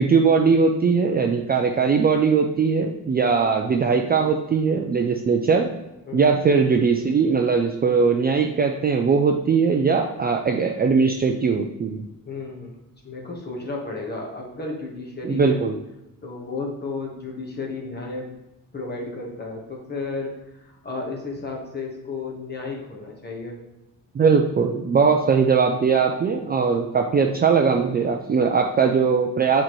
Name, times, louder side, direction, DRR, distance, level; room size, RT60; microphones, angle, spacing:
voice 1, 0.0-5.7 6.1-12.0 15.3-15.8 24.1-29.6, right 5 dB, 30° right, 2 dB, 0.4 m, -20 dB
voice 2, 6.1-6.4 12.3-12.7 13.0-15.6 16.2-18.3 18.7-23.6, left 3 dB, 30° left, -1 dB, 1.3 m, -33 dB
7.4 x 4.4 x 3.1 m, 0.95 s
cardioid pair, 145°, 35 cm